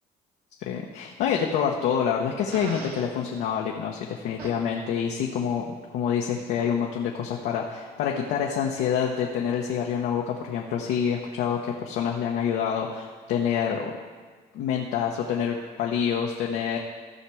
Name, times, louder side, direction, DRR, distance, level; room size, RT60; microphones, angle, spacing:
voice 1, 0.6-13.9 14.5-16.8, left 7 dB, 85° left, -1 dB, 1.1 m, -27 dB
Fart, 2.5-3.1 4.4-4.6, right 3 dB, 70° right, 2.1 m, -38 dB
15.0 x 5.9 x 4.9 m, 1.5 s
cardioid pair, 110°, 17 cm